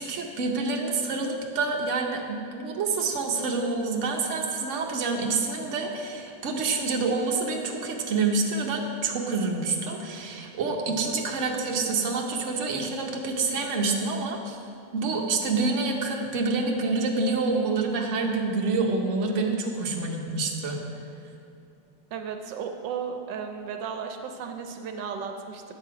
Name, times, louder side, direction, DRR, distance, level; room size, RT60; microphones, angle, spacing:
voice 1, 0.0-14.6 14.9-20.8, right 3 dB, 50° right, 1 dB, 1.1 m, -27 dB
voice 2, 22.1-25.6, right 6 dB, 80° right, 5 dB, 1.3 m, -34 dB
9.5 x 6.7 x 4.7 m, 2.5 s
omnidirectional pair, 2.0 m